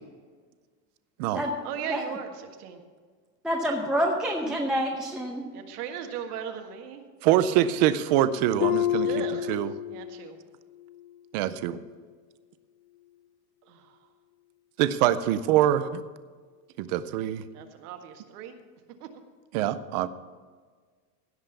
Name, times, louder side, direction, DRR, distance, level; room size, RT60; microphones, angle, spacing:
voice 1, 1.6-2.8 5.5-7.0 9.0-9.5 9.9-10.4 13.7-14.0 17.5-18.6 19.0-19.1, right 8 dB, 70° right, 5 dB, 1.8 m, -37 dB
voice 2, 3.4-5.4, equal, ahead, -2 dB, 0.7 m, -27 dB
voice 3, 7.2-9.7 11.3-11.8 14.8-16.0 16.8-17.4 19.5-20.1, right 12 dB, 30° right, 13 dB, 0.4 m, -24 dB
Harp, 8.6-10.4 10.7-11.1 11.7-11.8, left 13 dB, 80° left, 0.6 m, -29 dB
16.5 x 5.5 x 7.0 m, 1.6 s
supercardioid pair, 150°, 48 cm